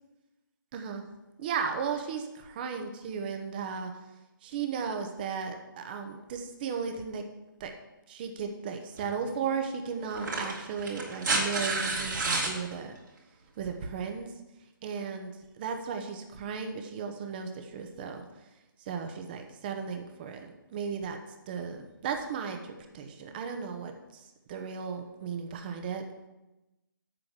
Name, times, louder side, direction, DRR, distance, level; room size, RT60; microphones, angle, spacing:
voice 1, 0.7-1.0 1.4-3.9 4.4-7.2 7.6-7.7 8.1-13.0 13.6-14.3 14.8-18.2 18.8-21.2 21.5-26.0, right 6 dB, 25° right, 5 dB, 1.0 m, -35 dB
sound 1, 9.0-9.1 10.1-12.6 14.1-14.2, right 3 dB, 55° right, 2.9 m, -30 dB
7.8 x 6.3 x 7.5 m, 1.0 s
figure-of-eight pair, 145°, 12 cm